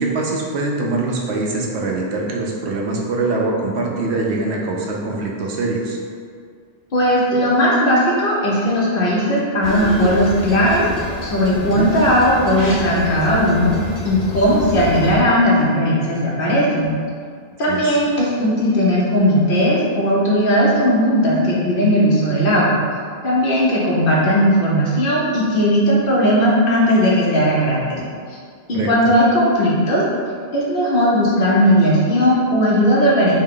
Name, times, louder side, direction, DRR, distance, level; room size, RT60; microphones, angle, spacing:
voice 1, 0.0-6.0 11.6-11.9 17.7-17.9 28.7-28.9, right 3 dB, 85° right, -1 dB, 0.9 m, -23 dB
voice 2, 6.9-13.7 14.0-17.0 17.6-22.8 23.2-28.0 28.3-28.4 28.7-30.0 30.5-33.3, equal, 60° left, -5 dB, 1.0 m, -17 dB
sound 1, 9.6-15.1, left 2 dB, 25° left, 0.5 m, -29 dB
4.4 x 2.1 x 3.7 m, 2.1 s
omnidirectional pair, 1.1 m